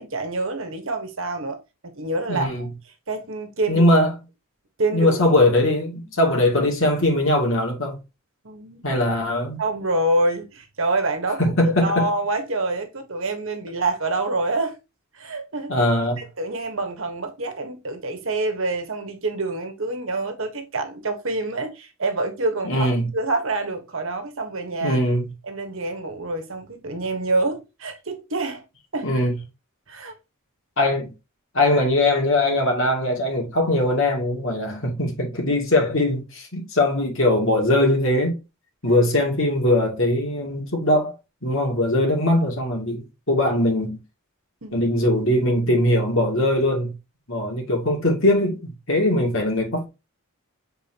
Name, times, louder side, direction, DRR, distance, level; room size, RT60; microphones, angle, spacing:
voice 1, 0.0-2.7 3.1-3.8 4.8-5.2 8.4-8.8 9.6-11.5 11.8-14.8 15.1-15.8 16.2-25.0 25.4-28.6 28.9-29.1 29.9-30.1 44.6-44.9, right 2 dB, 60° right, 1.3 m, -27 dB
voice 2, 2.3-2.7 3.7-4.1 4.9-8.0 8.8-9.6 11.6-12.1 15.7-16.2 22.6-23.1 24.8-25.3 29.0-29.3 30.8-31.1 31.5-38.4 38.8-41.1 41.4-44.0 44.7-46.9 47.3-49.9, left 1 dB, 60° left, 2.5 m, -21 dB
7.1 x 4.5 x 2.9 m
head